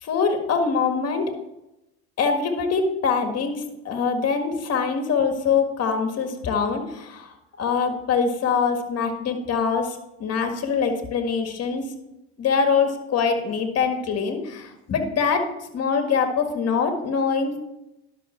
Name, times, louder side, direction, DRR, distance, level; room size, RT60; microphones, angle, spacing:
voice 1, 0.0-1.3 2.2-11.8 12.4-15.5 15.7-17.6, left 5 dB, 50° left, 6 dB, 1.8 m, -24 dB
11.0 x 6.3 x 4.4 m, 0.92 s
supercardioid pair, 80°, 32 cm